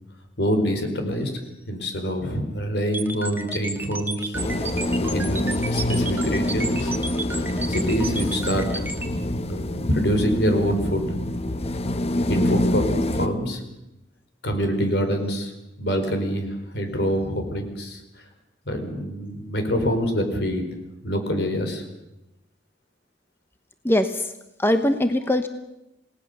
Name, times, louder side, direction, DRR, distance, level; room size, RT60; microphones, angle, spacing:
voice 1, 0.4-1.3 1.7-4.4 5.1-6.9 7.7-8.9 9.5-11.0 12.3-12.9 13.1-13.6 14.4-15.5 15.8-18.0 18.7-20.6 21.0-21.8, equal, 65° left, 5 dB, 4.6 m, -25 dB
sound 1, 2.9-9.1, right 3 dB, 10° right, 1.8 m, -32 dB
sound 2, 4.3-13.3, left 1 dB, 35° left, 1.0 m, -26 dB
voice 2, 23.8-24.3 24.6-25.5, left 1 dB, 15° left, 8 dB, 1.0 m, -21 dB
28.5 x 18.5 x 6.8 m, 0.91 s
head